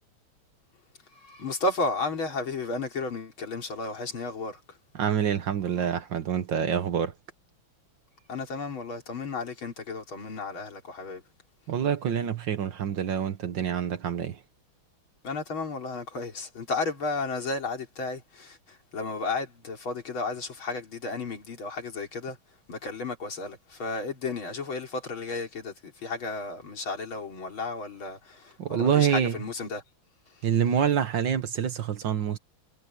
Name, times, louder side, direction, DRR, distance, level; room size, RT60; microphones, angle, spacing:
voice 1, 1.2-4.8 8.3-11.2 15.2-22.4 22.7-29.8, left 3 dB, 65° left, 4.3 m, -33 dB
voice 2, 4.9-7.1 11.7-14.4 28.6-29.4 30.4-32.4, right 8 dB, 60° right, 1.8 m, -26 dB
omnidirectional pair, 2.4 m